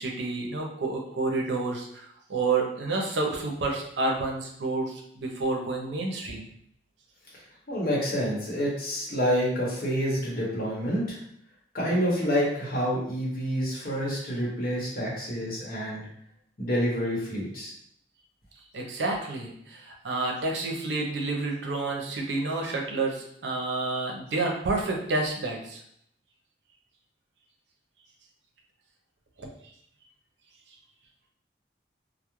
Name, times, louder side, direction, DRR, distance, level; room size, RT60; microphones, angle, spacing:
voice 1, 0.0-6.4 18.7-25.8 29.4-29.5, right 3 dB, 85° right, 0 dB, 0.5 m, -29 dB
voice 2, 7.7-11.2 11.7-16.1 16.6-17.7, equal, 55° left, -4 dB, 0.9 m, -28 dB
2.3 x 2.0 x 2.9 m, 0.70 s
head